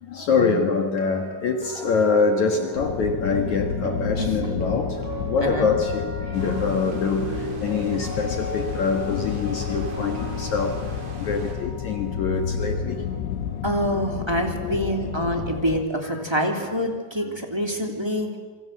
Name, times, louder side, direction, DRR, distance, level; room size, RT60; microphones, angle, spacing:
voice 1, 0.0-13.0 16.0-16.2 17.2-17.4, left 5 dB, 55° left, 4 dB, 2.2 m, -25 dB
sound 1, 0.8-14.8 15.1-15.4, right 1 dB, 40° right, 6.9 m, -37 dB
sound 2, 2.8-15.8, left 8 dB, 75° left, 3.1 m, -31 dB
voice 2, 4.2-4.7 5.4-5.7 13.6-18.4, equal, 10° right, 2 dB, 1.9 m, -26 dB
sound 3, 6.3-11.6, right 3 dB, 80° right, 6.4 m, -41 dB
27.5 x 25.0 x 7.7 m, 1.5 s
omnidirectional pair, 5.3 m